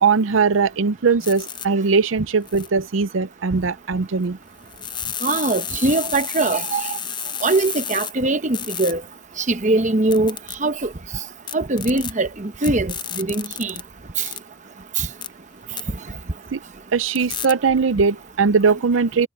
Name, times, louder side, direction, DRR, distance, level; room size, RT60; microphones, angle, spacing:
voice 1, 0.0-4.4 16.5-16.6 16.9-19.3, right 5 dB, 80° right, 0.6 m, -20 dB
sound 1, 1.2-1.7 2.5-2.7 4.7-8.1 8.5-8.9 10.1-10.6 11.5-12.1 12.6-13.8 14.2-14.4 15.2-15.3 15.8-15.9 17.2-17.5, left 9 dB, 25° left, 0.6 m, -31 dB
voice 2, 5.2-7.0 7.4-9.0 9.4-10.3 10.6-10.9 11.5-13.7 14.2-14.3 15.0-15.1, right 2 dB, 35° right, 1.0 m, -21 dB
head